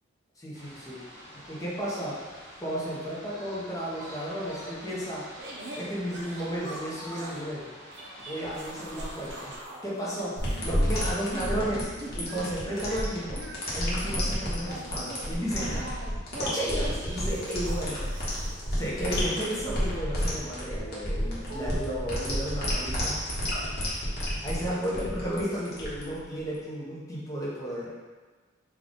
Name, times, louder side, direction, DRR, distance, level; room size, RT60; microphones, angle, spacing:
voice 1, 0.4-1.0 1.5-2.2 2.6-5.3 5.7-7.7 8.2-9.5 9.8-13.4 13.7-15.9 16.4-23.2 24.4-27.9, equal, 15° left, -6 dB, 0.7 m, -33 dB
sound 1, 0.5-9.6, equal, 20° right, 1.1 m, -46 dB
sound 2, 5.4-7.5 7.9-9.8 10.1-11.6 12.0-20.0 20.7-22.1, right 1 dB, 55° right, 0.6 m, -42 dB
sound 3, 10.4-26.6, equal, 50° left, 1.0 m, -30 dB
3.7 x 2.3 x 3.6 m, 1.4 s
head